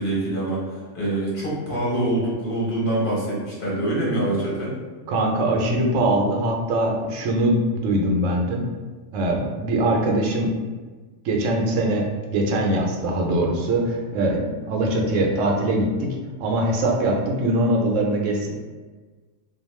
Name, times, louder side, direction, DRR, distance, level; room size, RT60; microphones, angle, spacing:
voice 1, 0.0-4.7, right 1 dB, 45° left, -6 dB, 1.0 m, -25 dB
voice 2, 5.1-8.6 9.1-10.5 11.2-12.0 12.3-14.4 14.7-16.1 16.4-18.5, right 1 dB, 70° right, 1 dB, 0.9 m, -22 dB
2.4 x 2.3 x 3.0 m, 1.4 s
omnidirectional pair, 1.4 m